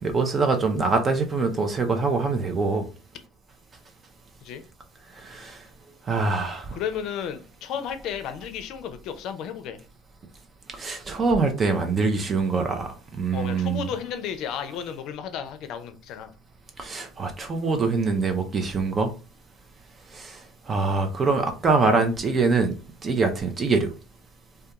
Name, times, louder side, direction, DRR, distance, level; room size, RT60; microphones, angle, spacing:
voice 1, 0.0-2.9 5.2-5.6 6.1-6.8 10.8-13.9 16.8-19.1 20.1-20.4 20.7-22.7 23.0-23.9, right 4 dB, 30° right, 0.5 m, -24 dB
voice 2, 6.7-9.8 13.3-16.3, left 8 dB, 65° left, 0.4 m, -33 dB
2.3 x 2.2 x 2.8 m
supercardioid pair, 90°, 0 cm